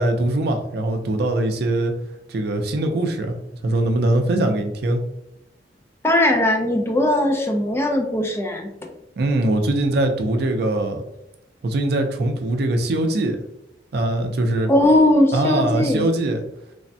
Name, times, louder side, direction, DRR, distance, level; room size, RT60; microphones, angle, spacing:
voice 1, 0.0-1.9 2.3-3.3 3.6-5.0 9.2-11.0 11.6-13.4 13.9-14.7 15.3-16.4, right 1 dB, 60° right, 5 dB, 0.4 m, -21 dB
voice 2, 6.0-8.7 14.7-16.1, left 1 dB, 15° left, 2 dB, 0.3 m, -19 dB
3.3 x 2.1 x 2.6 m, 0.84 s
head